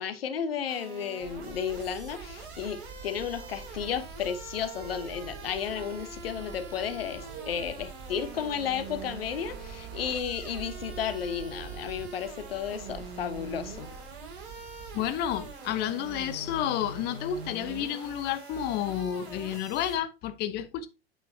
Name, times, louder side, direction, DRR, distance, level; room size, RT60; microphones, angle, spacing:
voice 1, 0.0-13.9, left 8 dB, 70° left, 1.2 m, -33 dB
sound 1, 0.7-20.0, right 4 dB, 60° right, 2.7 m, -44 dB
sound 2, 1.2-15.5, right 5 dB, 40° right, 3.3 m, -46 dB
voice 2, 14.9-20.9, left 10 dB, 35° left, 0.7 m, -31 dB
8.7 x 5.8 x 2.7 m
figure-of-eight pair, 90°, 31 cm